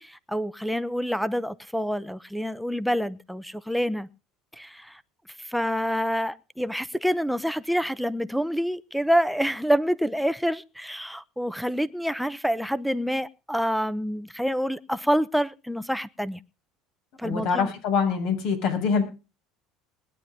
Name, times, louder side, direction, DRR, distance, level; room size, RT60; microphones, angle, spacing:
voice 1, 0.0-4.1 4.5-5.0 5.4-16.4 17.2-17.7, equal, ahead, 0.8 m, -27 dB
voice 2, 17.2-19.0, left 6 dB, 65° left, 6.6 m, -24 dB
21.0 x 10.5 x 3.7 m
cardioid pair, 125°, 0 cm